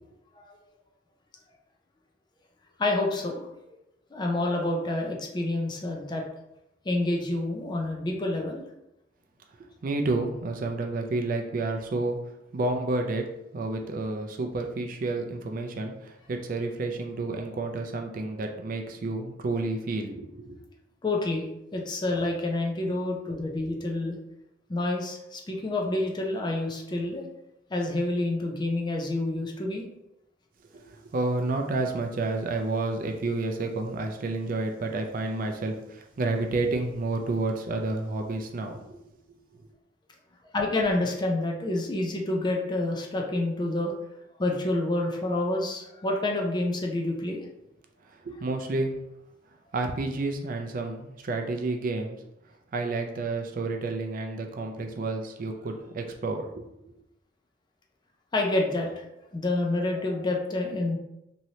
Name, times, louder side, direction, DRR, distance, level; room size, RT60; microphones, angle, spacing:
voice 1, 2.8-3.5 4.1-6.3 6.8-8.6 19.5-19.6 21.0-21.4 21.7-24.2 24.7-27.2 27.7-29.8 40.5-43.9 44.4-47.4 58.3-59.0 59.3-61.0, left 2 dB, 25° left, 0 dB, 0.4 m, -28 dB
voice 2, 9.8-12.2 12.5-13.3 13.5-20.6 30.7-39.0 48.1-48.9 49.7-52.2 52.7-56.5 56.9-57.0, right 2 dB, 50° right, 4 dB, 0.4 m, -30 dB
3.1 x 2.7 x 2.7 m, 0.86 s
head